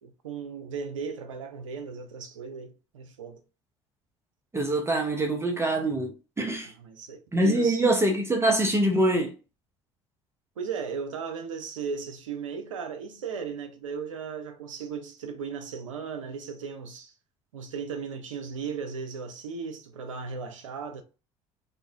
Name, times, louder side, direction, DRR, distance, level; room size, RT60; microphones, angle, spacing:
voice 1, 0.0-3.4 6.6-7.8 10.6-17.1 17.5-21.0, right 6 dB, 85° right, 0.4 m, -36 dB
voice 2, 4.5-6.7 7.3-9.3, right 1 dB, 15° right, 0.6 m, -24 dB
2.4 x 2.3 x 2.4 m
hypercardioid pair, 60°, 16 cm